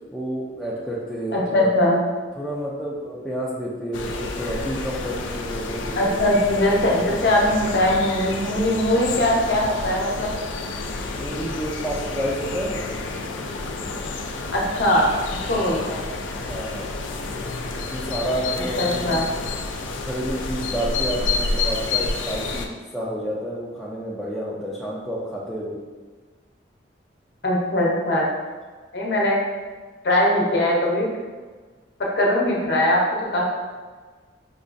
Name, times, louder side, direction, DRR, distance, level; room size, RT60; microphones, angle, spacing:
voice 1, 0.1-1.7 2.4-6.3 7.1-7.2 11.1-12.9 16.4-16.9 17.7-19.1 20.0-25.8, equal, ahead, -7 dB, 0.4 m, -30 dB
voice 2, 1.3-2.0 6.0-10.3 14.5-16.0 18.8-19.2 27.4-28.3 28.9-29.4 30.0-31.1 32.0-33.0 33.3-33.5, left 1 dB, 60° left, -3 dB, 0.7 m, -21 dB
sound 1, 3.9-22.7, left 3 dB, 90° left, 0.4 m, -29 dB
5.2 x 2.3 x 2.5 m, 1.4 s
head